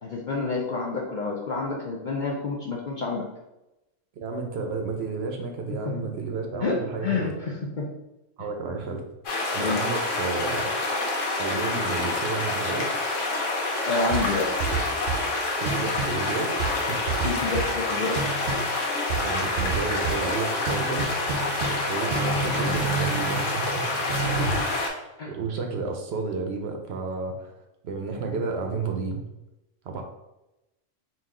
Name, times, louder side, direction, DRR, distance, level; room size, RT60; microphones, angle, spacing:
voice 1, 0.0-3.3 5.7-6.0 6.6-7.9 9.6-9.8 13.8-14.5 17.2-18.3 24.2-24.7 25.2-25.3, left 3 dB, 55° left, -2 dB, 0.6 m, -29 dB
voice 2, 4.2-7.5 8.4-9.0 9.3-10.7 11.4-12.9 15.5-17.0 19.2-21.0 21.9-24.1 24.6-24.8 25.3-27.5 27.8-29.2 29.8-30.0, right 4 dB, 65° right, 3 dB, 0.8 m, -31 dB
sound 1, 9.2-24.9, left 2 dB, 80° left, 1.2 m, -27 dB
sound 2, 14.1-15.3 15.6-16.2 16.6-17.8 18.1-18.7 19.1-20.3 20.7-21.8 22.1-24.6, right 5 dB, 85° right, 1.0 m, -30 dB
4.1 x 2.4 x 3.6 m, 0.94 s
omnidirectional pair, 1.3 m